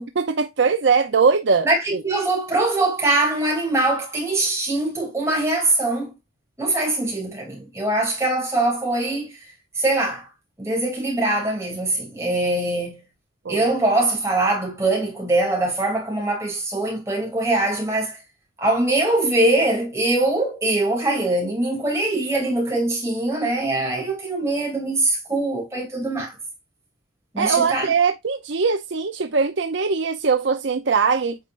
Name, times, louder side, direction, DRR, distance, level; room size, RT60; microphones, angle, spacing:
voice 1, 0.2-1.7 1.9-2.0 13.4-13.7 27.4-31.4, right 5 dB, 60° right, 0.6 m, -21 dB
voice 2, 1.6-6.1 6.6-9.5 9.8-10.3 10.6-13.0 13.5-18.2 18.6-26.4 27.3-27.9, right 2 dB, 15° right, 2.8 m, -22 dB
8.6 x 5.2 x 2.5 m
head